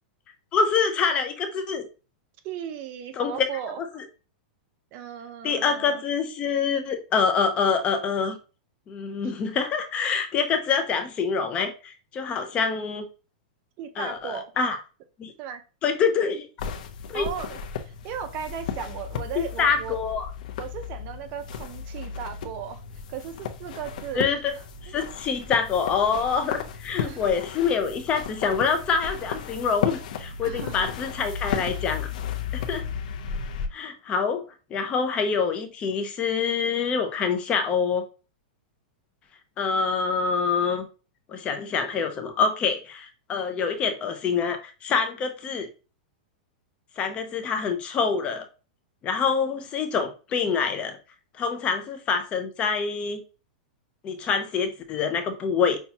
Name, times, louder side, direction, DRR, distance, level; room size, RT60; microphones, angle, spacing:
voice 1, 0.5-1.8 3.2-3.5 3.9-4.0 5.4-8.4 8.9-13.0 14.0-14.8 15.2-15.3 15.8-16.5 17.1-17.3 19.4-20.3 24.1-24.5 24.8-32.1 32.5-32.9 33.7-34.4 34.7-38.1 39.6-40.9 41.3-45.7 47.0-48.5 49.0-51.0 51.4-53.2 54.0-55.8, left 5 dB, 25° left, 0.6 m, -26 dB
voice 2, 2.4-3.8 4.9-6.0 9.2-9.3 13.8-14.5 15.4-15.6 17.1-17.6 17.8-20.0 20.6-22.8 23.1-24.3 24.9-25.0 27.0-27.2 30.4-30.9, right 8 dB, 40° right, 0.5 m, -36 dB
sound 1, 16.6-33.7, left 7 dB, 65° left, 0.6 m, -34 dB
5.5 x 2.2 x 2.8 m
supercardioid pair, 145°, 5 cm